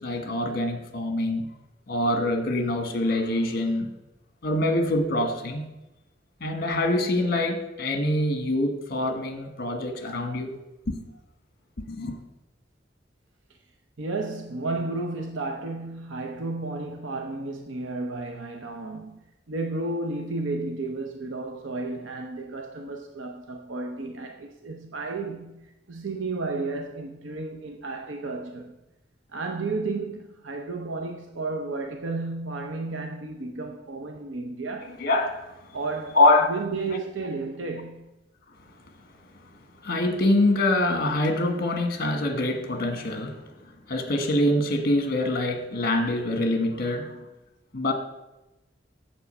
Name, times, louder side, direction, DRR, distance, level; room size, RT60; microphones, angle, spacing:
voice 1, 0.0-1.5 1.9-3.9 4.4-5.6 6.4-10.5 10.9-11.1 11.9-12.1 35.0-35.5 36.1-36.5 39.8-43.4 43.9-47.3 47.7-47.9, left 1 dB, 50° left, 1.4 m, -24 dB
voice 2, 14.0-28.8 29.3-35.0 35.7-38.1, right 3 dB, 90° right, 0.8 m, -33 dB
8.2 x 7.6 x 5.5 m
head